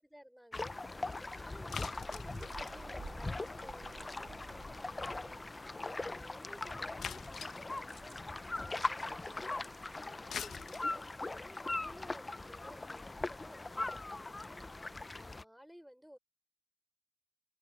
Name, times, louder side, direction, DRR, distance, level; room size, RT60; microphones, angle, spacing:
voice 1, 0.0-10.0 10.4-16.2, equal, ahead, 5.6 m, -57 dB
sound 1, 0.5-15.4, left 2 dB, 25° left, 0.5 m, -41 dB
sound 2, 0.8-14.9, right 6 dB, 80° right, 2.0 m, -59 dB
sound 3, 1.7-4.5 4.8-4.9 5.1-5.2 5.5-5.6 6.0-6.1 7.0-8.3 10.1-14.4, left 7 dB, 90° left, 0.8 m, -46 dB
open air
wide cardioid pair, 90°, 0 cm